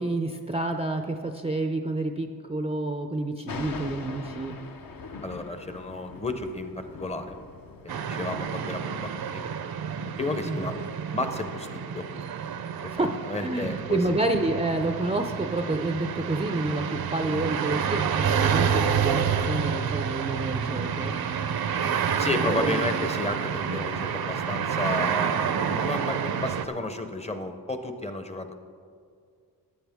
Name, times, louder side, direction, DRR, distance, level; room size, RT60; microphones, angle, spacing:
voice 1, 0.0-4.6 10.5-10.7 13.0-13.1 13.4-21.1 22.6-22.8, right 2 dB, 15° right, 5 dB, 0.4 m, -29 dB
Thunder, 3.5-8.5, left 4 dB, 65° left, 0.9 m, -41 dB
voice 2, 5.2-7.4 7.8-9.4 10.2-10.8 11.1-12.1 13.0-14.0 22.2-28.6, left 2 dB, 15° left, 7 dB, 0.7 m, -32 dB
sound 1, 7.9-26.7, right 7 dB, 70° right, 0.7 m, -29 dB
15.0 x 9.4 x 3.5 m, 2.2 s
wide cardioid pair, 135°, 38 cm